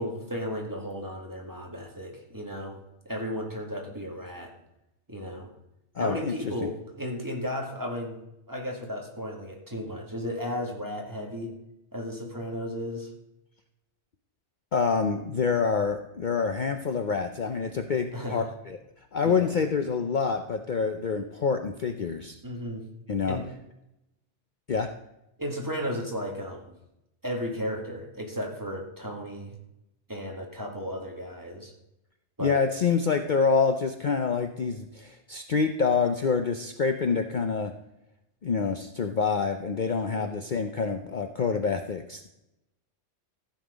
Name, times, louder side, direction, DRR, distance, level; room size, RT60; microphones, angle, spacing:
voice 1, 0.0-2.8 3.1-4.5 5.1-5.5 6.0-8.2 8.5-11.5 11.9-13.1 18.1-18.5 19.2-19.5 22.4-22.8 23.3-23.4 25.4-26.8 27.2-29.6 30.1-31.7 32.4-32.6 40.1-40.5, equal, 15° right, 0 dB, 2.0 m, -34 dB
voice 2, 6.0-6.3 6.6-6.7 14.7-18.8 19.1-22.4 23.1-23.4 24.7-24.9 32.4-37.7 38.4-42.3, left 5 dB, 50° left, 6 dB, 0.8 m, -27 dB
14.5 x 7.7 x 5.1 m, 0.87 s
omnidirectional pair, 1.2 m